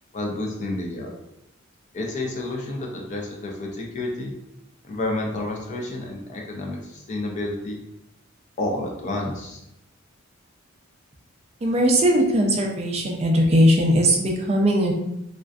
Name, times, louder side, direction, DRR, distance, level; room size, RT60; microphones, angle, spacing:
voice 1, 0.1-1.2 1.9-4.3 4.8-7.8 8.6-9.6, left 2 dB, 35° left, 0 dB, 0.4 m, -30 dB
voice 2, 11.6-14.9, equal, 30° right, 1 dB, 0.3 m, -19 dB
2.4 x 2.3 x 2.2 m, 0.83 s
head